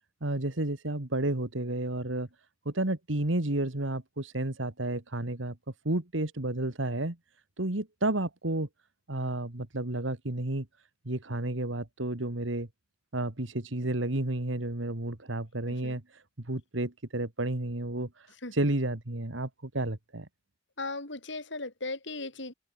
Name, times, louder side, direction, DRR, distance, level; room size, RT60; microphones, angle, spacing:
voice 1, 0.2-2.3 2.7-5.6 5.8-7.2 7.6-8.7 9.1-10.7 11.0-12.7 13.1-16.0 16.4-18.1 18.5-20.3, right 1 dB, 85° right, 2.3 m, -31 dB
voice 2, 15.7-16.0 18.4-18.5 20.8-22.5, left 3 dB, 70° left, 5.3 m, -37 dB
head